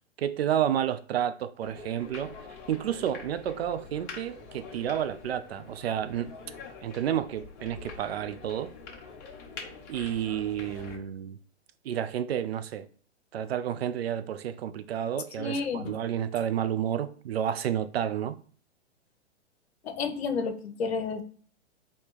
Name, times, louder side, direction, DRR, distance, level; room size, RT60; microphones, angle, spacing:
voice 1, 0.2-2.3 2.7-6.3 6.8-8.7 9.9-11.4 11.8-12.8 13.3-18.4, right 10 dB, 60° right, 0.5 m, -30 dB
sound 1, 1.6-11.0, left 4 dB, 30° left, 1.1 m, -45 dB
voice 2, 15.4-15.9 19.8-21.2, left 4 dB, 65° left, 0.9 m, -31 dB
3.5 x 2.8 x 4.7 m
hypercardioid pair, 120°, 35 cm